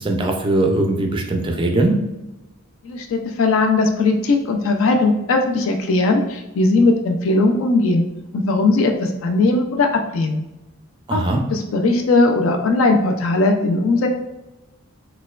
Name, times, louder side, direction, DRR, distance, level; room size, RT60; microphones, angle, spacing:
voice 1, 0.0-2.0 11.1-11.4, right 2 dB, 20° right, 3 dB, 0.3 m, -20 dB
voice 2, 2.8-8.1 8.3-9.9 10.1-10.4 11.1-11.2 11.5-14.1, left 3 dB, 65° left, 3 dB, 0.4 m, -18 dB
4.2 x 2.2 x 2.3 m, 0.99 s
head